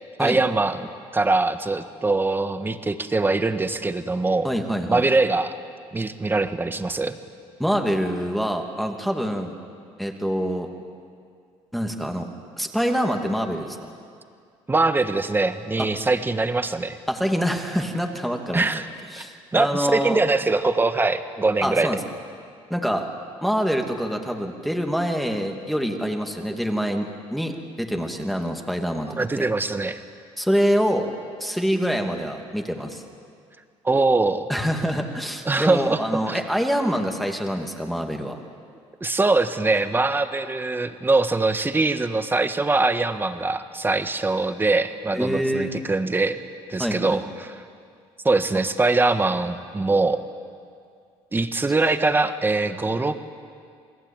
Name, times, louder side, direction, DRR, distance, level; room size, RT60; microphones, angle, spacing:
voice 1, 0.2-4.5 4.9-5.5 5.9-7.2 14.7-17.0 18.5-18.9 19.5-21.9 29.2-30.0 33.8-34.5 35.4-36.0 36.3-36.4 39.0-46.4 46.7-47.5 48.2-50.2 51.3-53.2, right 3 dB, 20° right, 9 dB, 1.5 m, -22 dB
voice 2, 4.4-5.0 7.6-9.5 10.0-10.7 11.7-12.3 12.6-13.8 15.8-15.9 17.1-18.7 19.1-20.2 21.6-22.0 22.7-23.1 23.4-27.5 27.8-29.5 30.4-31.1 31.4-33.0 34.5-38.4 45.1-45.7 46.8-47.2, equal, ahead, 2 dB, 2.6 m, -25 dB
28.5 x 19.5 x 9.0 m, 2.2 s
cardioid pair, 95°, 12 cm